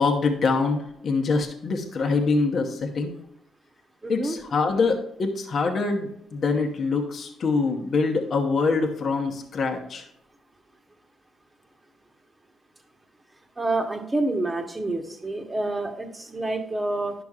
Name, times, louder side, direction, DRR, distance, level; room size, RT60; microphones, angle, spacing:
voice 1, 0.0-3.1 4.1-10.0, left 4 dB, 50° left, 2 dB, 1.0 m, -24 dB
voice 2, 4.0-4.4 13.6-17.1, right 2 dB, 15° right, 5 dB, 1.2 m, -28 dB
10.5 x 6.0 x 2.4 m, 0.75 s
cardioid pair, 90°, 0 cm